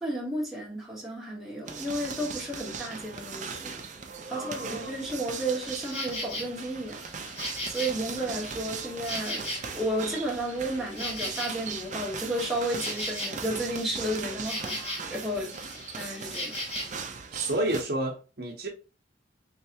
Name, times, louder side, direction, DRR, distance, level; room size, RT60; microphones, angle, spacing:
voice 1, 0.0-3.7 4.3-7.0 7.7-9.5 9.7-14.8 15.1-15.6 15.9-16.6, right 1 dB, ahead, 1.0 m, -32 dB
sound 1, 1.7-17.8, right 5 dB, 40° right, 0.5 m, -39 dB
voice 2, 4.3-5.0 17.3-18.7, right 1 dB, 60° right, 0.9 m, -31 dB
Insect, 5.6-6.5 7.0-10.0 10.3-15.2 15.5-17.0, left 1 dB, 35° left, 1.6 m, -37 dB
3.3 x 3.2 x 2.8 m
head